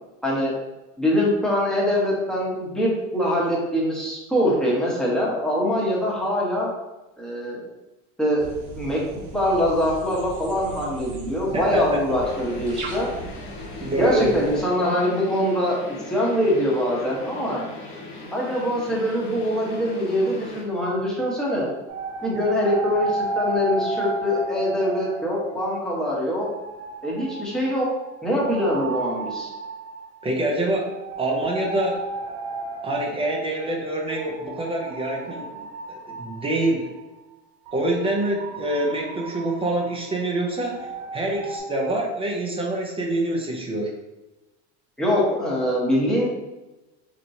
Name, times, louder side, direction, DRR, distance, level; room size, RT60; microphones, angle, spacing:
voice 1, 0.2-0.5 1.0-6.7 7.2-7.6 8.2-8.4 8.7-9.0 9.3-13.1 14.0-15.8 16.1-17.6 18.3-21.7 22.2-26.5 27.0-27.9 28.2-29.5 45.0-46.3, equal, ahead, -5 dB, 1.0 m, -23 dB
sound 1, 8.4-14.6, right 2 dB, 55° right, 1.0 m, -38 dB
voice 2, 11.5-12.0 13.8-14.3 30.2-30.9 31.2-32.0 32.8-35.5 36.1-36.9 37.7-43.9, right 1 dB, 15° right, 0 dB, 0.6 m, -26 dB
sound 2, 12.2-20.6, left 2 dB, 85° left, 1.3 m, -39 dB
Sad And Cosmic, 21.9-26.0 26.4-37.0 37.7-41.6, right 2 dB, 80° right, 1.3 m, -33 dB
4.3 x 3.0 x 2.7 m, 1.1 s
cardioid pair, 140°, 33 cm